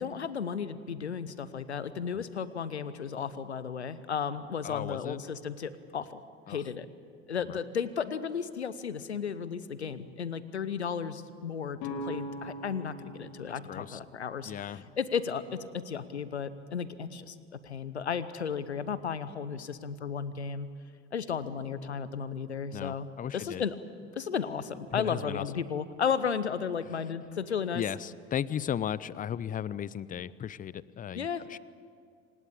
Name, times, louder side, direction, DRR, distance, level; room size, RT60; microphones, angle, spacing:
voice 1, 0.0-6.2 6.5-6.9 7.3-20.7 21.1-23.1 23.3-23.8 24.2-27.8 31.1-31.4, left 6 dB, 80° left, 16 dB, 0.9 m, -34 dB
voice 2, 4.6-5.2 6.5-6.6 7.5-7.6 13.7-14.0 14.5-14.8 22.7-23.6 24.9-25.4 27.7-31.6, left 9 dB, 25° left, 21 dB, 0.6 m, -36 dB
sound 1, 11.8-15.6, left 1 dB, 55° left, 3.0 m, -42 dB
27.0 x 17.5 x 8.7 m, 2.2 s
figure-of-eight pair, 60°, 33 cm